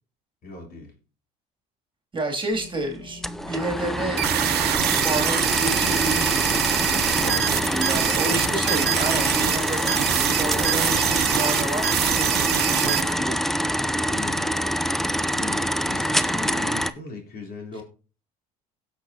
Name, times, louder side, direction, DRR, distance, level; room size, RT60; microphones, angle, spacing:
voice 1, 0.4-1.0 7.2-7.8 8.2-8.5 8.8-9.2 14.1-14.5 15.3-17.8, left 2 dB, 55° left, 1 dB, 3.5 m, -38 dB
voice 2, 2.1-3.2 3.5-4.2 5.0-6.7 7.7-12.2 12.6-13.4, right 2 dB, 25° right, 2 dB, 2.7 m, -30 dB
sound 1, 2.5-11.3, left 3 dB, 25° left, 4.4 m, -43 dB
sound 2, 3.2-16.9, equal, ahead, 0.6 m, -25 dB
sound 3, 4.2-13.0, right 13 dB, 60° right, 1.0 m, -24 dB
17.5 x 6.9 x 2.8 m, 0.36 s
hypercardioid pair, 70°, 19 cm